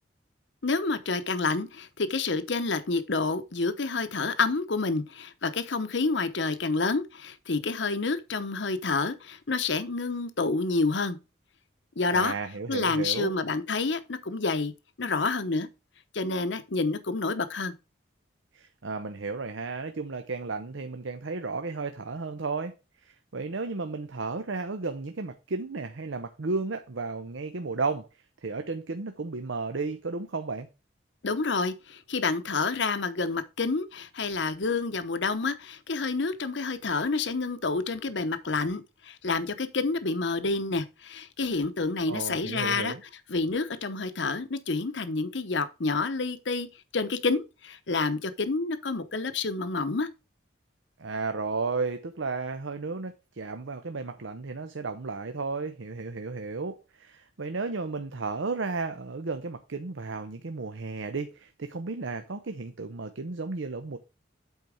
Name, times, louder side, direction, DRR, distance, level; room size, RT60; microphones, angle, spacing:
voice 1, 0.6-11.2 12.0-12.3 12.7-14.7 15.0-15.7 16.1-17.7 31.2-42.9 43.3-46.7 46.9-50.1, left 3 dB, 70° left, 0.9 m, -28 dB
voice 2, 12.1-13.3 18.5-22.7 23.0-28.1 28.4-30.7 42.1-43.0 51.0-64.0, right 4 dB, 85° right, 0.7 m, -33 dB
8.1 x 4.6 x 5.0 m
head